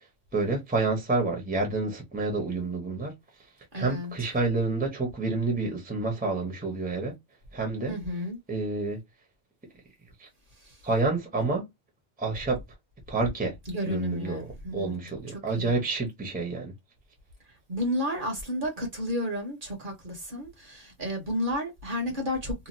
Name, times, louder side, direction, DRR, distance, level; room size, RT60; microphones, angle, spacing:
voice 1, 0.3-3.1 3.7-7.1 7.5-7.9 8.5-9.0 10.2-10.3 10.8-11.7 12.2-12.6 13.1-13.5 13.9-16.7, right 3 dB, 10° right, 0.8 m, -28 dB
voice 2, 3.7-4.1 7.9-8.4 13.7-14.9 15.6-15.8 17.7-22.7, equal, 45° right, 1.1 m, -31 dB
2.8 x 2.4 x 2.6 m
omnidirectional pair, 1.2 m